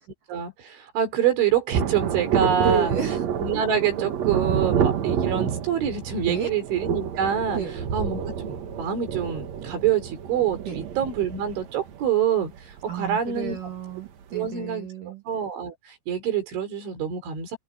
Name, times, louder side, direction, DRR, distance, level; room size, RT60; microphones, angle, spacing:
voice 1, 0.3-2.9 3.4-7.6 7.9-13.6 14.3-17.6, right 8 dB, 90° right, 6.8 m, -26 dB
Thunder, 1.7-13.7 14.0-14.1, right 8 dB, 65° right, 1.7 m, -28 dB
voice 2, 2.6-3.2 6.3-6.5 7.5-7.7 10.7-10.8 12.9-15.2, right 6 dB, 50° right, 3.3 m, -30 dB
omnidirectional pair, 5.2 m